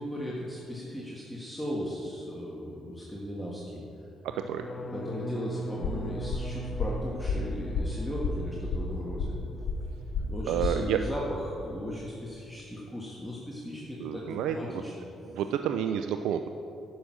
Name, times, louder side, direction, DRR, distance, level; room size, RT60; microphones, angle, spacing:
voice 1, 0.0-3.8 4.9-9.3 10.3-14.9, equal, 5° left, -5 dB, 1.6 m, -37 dB
voice 2, 4.2-4.6 10.5-11.0 14.0-14.8 15.3-16.5, right 9 dB, 85° right, 7 dB, 0.3 m, -30 dB
sound 1, 4.3-10.2 10.5-11.0 11.3-11.7, right 1 dB, 40° left, 0.6 m, -41 dB
sound 2, 5.8-10.8, left 4 dB, 80° left, 0.9 m, -32 dB
10.0 x 6.2 x 6.2 m, 2.8 s
cardioid pair, 75°, 0 cm